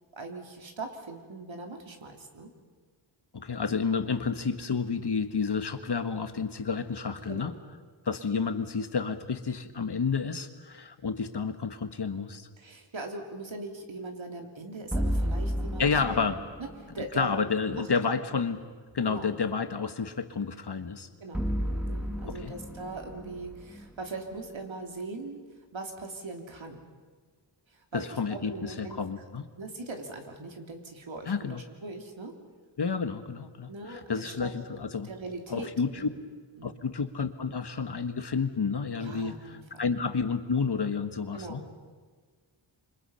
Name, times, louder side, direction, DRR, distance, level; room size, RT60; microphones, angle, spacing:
voice 1, 0.1-2.5 7.3-7.5 12.6-15.9 16.2-16.3 16.6-17.3 17.7-18.4 19.0-19.3 21.2-21.4 21.8-25.4 25.7-26.8 27.7-29.0 29.6-32.3 33.7-34.5 35.0-35.7 36.0-36.1 36.6-36.9 39.0-39.8 41.3-41.7, right 3 dB, 75° right, 3 dB, 3.3 m, -40 dB
voice 2, 3.3-7.5 8.0-12.5 15.8-16.4 17.1-18.6 18.9-21.1 22.3-22.5 27.9-29.5 31.3-31.6 32.8-35.1 35.5-36.1 36.6-41.6, left 5 dB, 55° left, 9 dB, 1.5 m, -30 dB
sound 1, 14.9-17.1 21.3-24.6, equal, 5° right, 2.0 m, -32 dB
28.0 x 25.5 x 5.7 m, 1.5 s
wide cardioid pair, 85°, 47 cm